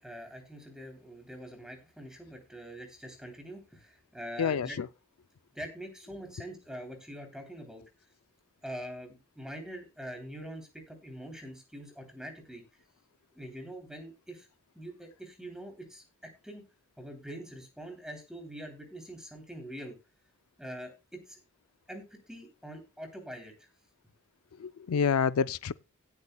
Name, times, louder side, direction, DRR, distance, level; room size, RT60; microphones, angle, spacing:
voice 1, 0.0-4.8 5.5-7.8 8.6-12.6 13.3-14.5 14.7-16.6 17.0-19.9 20.6-21.4 21.9-23.7, right 1 dB, 5° right, 3.2 m, -44 dB
voice 2, 4.4-4.9 24.6-25.7, left 6 dB, 85° left, 0.4 m, -28 dB
17.0 x 8.3 x 2.2 m
head